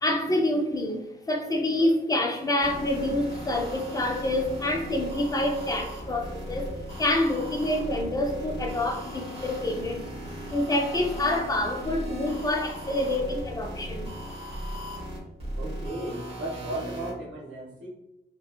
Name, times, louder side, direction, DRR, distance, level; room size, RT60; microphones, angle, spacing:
voice 1, 0.0-6.7 7.0-10.0 10.5-14.1, left 1 dB, 20° left, 3 dB, 0.3 m, -27 dB
sound 1, 2.6-17.1, equal, 30° right, 1.0 m, -37 dB
voice 2, 15.6-17.9, right 1 dB, 85° right, -4 dB, 0.7 m, -35 dB
3.6 x 2.2 x 2.2 m, 0.95 s
wide cardioid pair, 170°, 20 cm